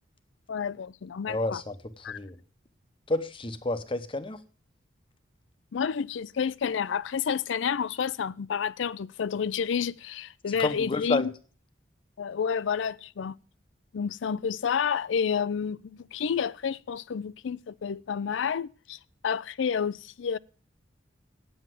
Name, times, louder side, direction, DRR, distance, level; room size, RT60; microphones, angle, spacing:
voice 1, 0.5-1.6 2.0-2.2 5.7-11.2 12.2-13.3 13.9-20.4, left 7 dB, 75° left, 0.4 m, -30 dB
voice 2, 1.3-2.4 3.1-4.4 10.5-11.3, left 2 dB, 25° left, 0.8 m, -30 dB
8.8 x 7.8 x 7.5 m
head